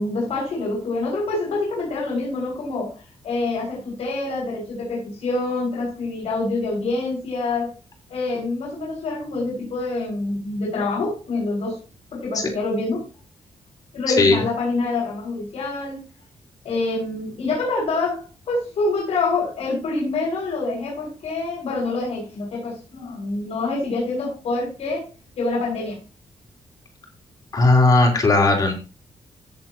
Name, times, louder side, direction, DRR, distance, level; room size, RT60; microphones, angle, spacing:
voice 1, 0.0-7.7 8.1-11.8 12.1-13.0 13.9-16.0 16.6-25.1 25.4-26.0, left 3 dB, 75° left, -4 dB, 6.5 m, -26 dB
voice 2, 27.5-28.7, left 2 dB, 35° left, 1 dB, 3.6 m, -16 dB
16.5 x 7.5 x 3.0 m, 0.33 s
wide cardioid pair, 165°, 11 cm